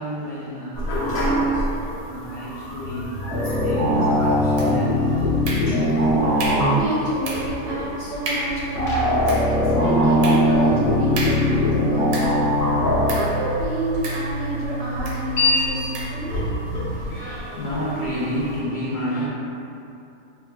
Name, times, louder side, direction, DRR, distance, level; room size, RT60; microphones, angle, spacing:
voice 1, 0.0-5.2 16.8-19.2, equal, 60° left, -9 dB, 0.5 m, -31 dB
sound 1, 0.7-18.6, equal, 85° left, 1.2 m, -29 dB
sound 2, 3.3-7.1 8.8-13.1, left 1 dB, 45° left, 1.0 m, -20 dB
sound 3, 4.6-5.0 5.4-6.0 6.4-6.8 7.2-7.6 7.9-8.0 8.2-8.7 9.1-12.5 13.1-13.4 14.0-14.6 15.0-15.3 15.9-16.2, right 2 dB, 85° right, 1.1 m, -32 dB
voice 2, 5.3-5.7 6.3-6.4 6.7-12.6 13.1-16.3, right 1 dB, 65° right, -7 dB, 0.7 m, -29 dB
4.7 x 2.1 x 2.2 m, 2.7 s
omnidirectional pair, 1.5 m